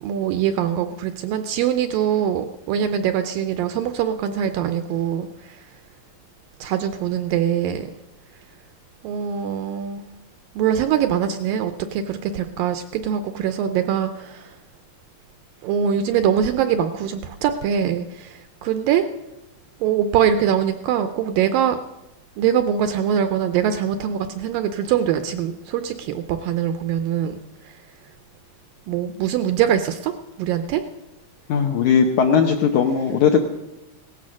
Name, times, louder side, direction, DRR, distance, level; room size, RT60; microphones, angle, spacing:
voice 1, 0.0-5.6 6.6-7.9 9.0-10.1 10.6-14.5 15.6-19.0 19.8-21.8 22.4-27.4 28.9-30.1 30.4-30.8, right 9 dB, 80° right, 9 dB, 2.1 m, -23 dB
voice 2, 31.5-33.5, left 6 dB, 75° left, 4 dB, 1.8 m, -18 dB
17.0 x 12.5 x 6.3 m, 0.95 s
omnidirectional pair, 4.6 m